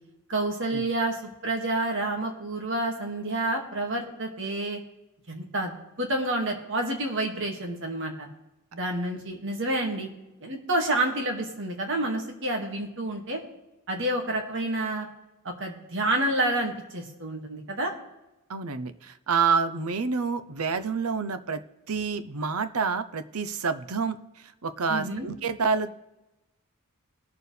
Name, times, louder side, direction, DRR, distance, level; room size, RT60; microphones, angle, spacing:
voice 1, 0.3-4.8 5.3-8.3 8.7-10.1 10.4-13.4 13.9-15.1 15.4-17.9 24.9-25.3, right 1 dB, 60° right, 2 dB, 2.1 m, -29 dB
voice 2, 18.5-21.6 21.9-24.2 24.6-25.9, right 5 dB, 90° right, 12 dB, 0.8 m, -28 dB
20.0 x 6.9 x 3.3 m, 0.98 s
head